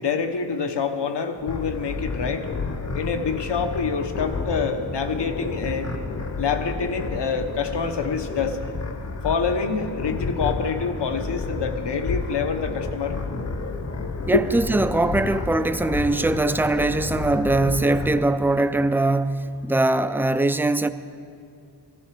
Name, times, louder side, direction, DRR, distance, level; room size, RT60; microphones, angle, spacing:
voice 1, 0.0-2.5 2.9-5.9 6.4-8.6 9.2-13.2 14.3-14.4, left 5 dB, 75° left, 1.1 m, -26 dB
sound 1, 1.5-18.2, left 3 dB, 35° left, 0.9 m, -31 dB
voice 2, 14.3-20.9, right 2 dB, 5° right, 0.3 m, -22 dB
15.0 x 14.5 x 4.9 m
wide cardioid pair, 120°, 42 cm